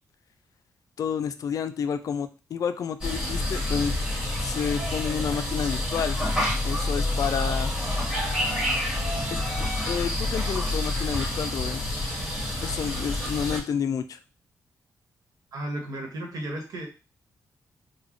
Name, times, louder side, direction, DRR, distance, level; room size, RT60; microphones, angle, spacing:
voice 1, 1.0-3.9 4.4-6.2 6.6-7.7 9.3-9.4 9.9-11.8 12.6-14.2, left 7 dB, 65° left, 10 dB, 0.4 m, -30 dB
sound 1, 3.0-13.6, left 1 dB, 10° right, 1.8 m, -28 dB
voice 2, 15.5-16.9, right 1 dB, 70° right, 2 dB, 1.2 m, -34 dB
4.0 x 2.2 x 3.1 m, 0.31 s
cardioid pair, 95°, 6 cm